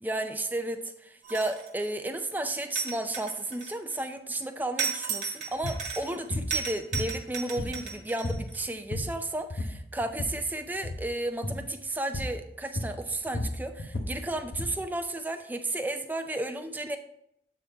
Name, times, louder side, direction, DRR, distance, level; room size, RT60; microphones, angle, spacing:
voice 1, 0.0-17.0, right 2 dB, 10° right, 7 dB, 0.4 m, -33 dB
sound 1, 1.2-1.8 2.8-4.0 4.8-6.2 6.5-8.6, right 6 dB, 45° right, 1.2 m, -34 dB
sound 2, 5.6-5.8 6.3-6.5 6.9-7.9 8.2-8.5 8.8-9.2 9.5-10.4 10.8-11.1 11.4-11.7 12.1-12.4 12.8-14.8, left 1 dB, 70° left, 0.8 m, -33 dB
8.2 x 3.6 x 4.5 m, 0.75 s
head